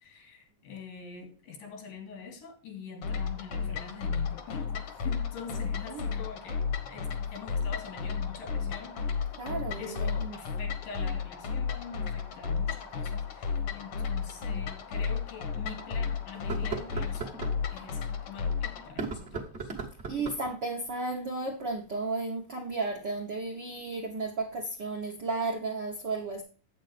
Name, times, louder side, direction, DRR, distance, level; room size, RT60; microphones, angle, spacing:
voice 1, 0.0-9.2 9.8-17.4 17.7-19.7, left 5 dB, 85° left, 3.8 m, -44 dB
sound 1, 3.0-18.9, left 6 dB, 65° left, 1.4 m, -33 dB
voice 2, 9.4-10.4 20.1-26.4, right 3 dB, 75° right, 1.0 m, -34 dB
sound 2, 14.4-14.5 15.1-15.2 16.3-17.6 18.8-20.5, right 4 dB, 50° right, 0.8 m, -37 dB
8.3 x 8.1 x 3.3 m
omnidirectional pair, 3.8 m